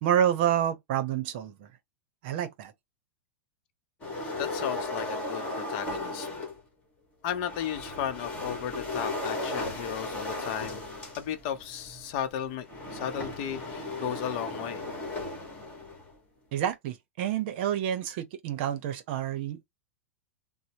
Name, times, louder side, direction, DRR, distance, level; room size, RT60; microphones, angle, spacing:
voice 1, 0.0-1.7 2.2-2.7 16.5-19.6, right 10 dB, 50° right, 0.8 m, -28 dB
sound 1, 4.0-6.6 7.3-16.1, left 2 dB, 15° left, 1.7 m, -36 dB
voice 2, 4.4-6.3 7.2-10.8 11.2-14.8, left 9 dB, 40° left, 0.8 m, -35 dB
4.0 x 2.1 x 2.9 m
supercardioid pair, 160°, 8 cm